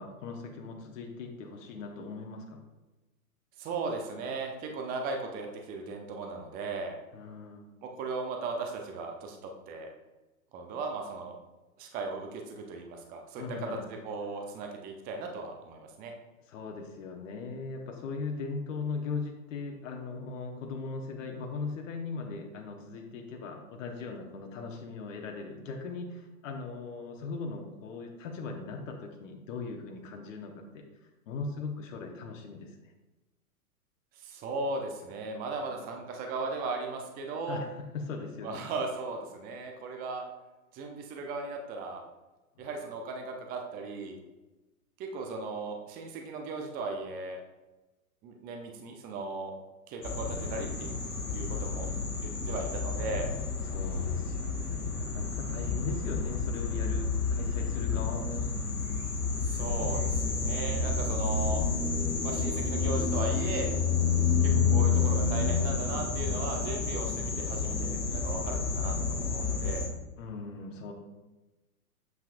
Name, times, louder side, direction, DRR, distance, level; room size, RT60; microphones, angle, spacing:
voice 1, 0.0-2.6 7.1-7.6 13.4-13.9 16.5-30.8 31.3-32.8 35.6-35.9 37.5-38.6 42.6-42.8 51.7-52.3 53.6-58.5 70.2-70.9, left 4 dB, 55° left, 2 dB, 1.1 m, -39 dB
voice 2, 3.6-7.0 7.8-9.9 10.5-11.3 11.8-13.4 14.0-16.1 34.2-37.6 38.4-40.2 40.7-42.0 42.6-44.2 45.0-47.4 48.2-49.5 49.9-50.9 51.3-51.9 52.2-53.3 59.4-61.6 62.2-63.7 64.4-69.9, right 3 dB, 20° right, 3 dB, 0.6 m, -37 dB
sound 1, 50.0-69.9, left 5 dB, 80° left, 1.5 m, -30 dB
7.8 x 5.6 x 2.5 m, 1.1 s
hypercardioid pair, 115°, 45 cm